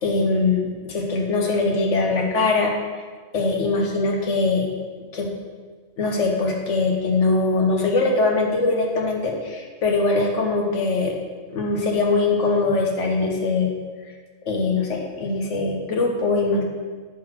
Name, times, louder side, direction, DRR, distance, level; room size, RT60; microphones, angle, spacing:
voice 1, 0.0-2.7 3.3-4.7 5.1-5.3 6.0-11.1 11.5-13.7 14.5-16.6, left 3 dB, 80° left, 1 dB, 1.5 m, -22 dB
9.1 x 4.0 x 6.1 m, 1.5 s
omnidirectional pair, 1.2 m